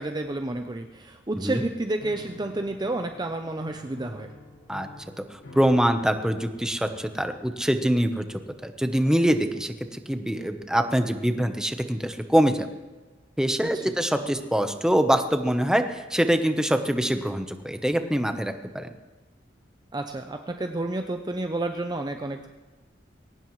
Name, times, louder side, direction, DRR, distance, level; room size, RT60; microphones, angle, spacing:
voice 1, 0.0-4.3 13.7-13.8 19.9-22.5, right 2 dB, 25° right, 5 dB, 0.6 m, -30 dB
Piano, 2.0-7.9, left 1 dB, 70° left, 2.4 m, -48 dB
voice 2, 5.2-8.3 8.6-12.7 13.4-18.9, equal, 5° right, 7 dB, 1.0 m, -24 dB
21.5 x 18.0 x 3.2 m, 1.2 s
head